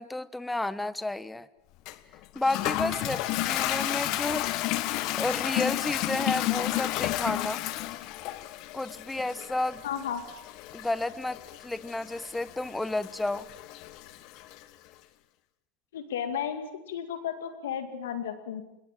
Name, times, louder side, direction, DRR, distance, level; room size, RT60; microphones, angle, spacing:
voice 1, 0.0-1.5 2.3-4.7 5.1-7.6 8.7-9.8 10.7-13.5, left 2 dB, 10° left, 17 dB, 1.1 m, -31 dB
Toilet flush, 1.9-14.6, left 16 dB, 55° left, 1.5 m, -32 dB
voice 2, 9.8-10.2 15.9-18.6, left 8 dB, 80° left, 9 dB, 2.2 m, -33 dB
26.5 x 21.5 x 7.5 m, 0.85 s
hypercardioid pair, 100°, 0 cm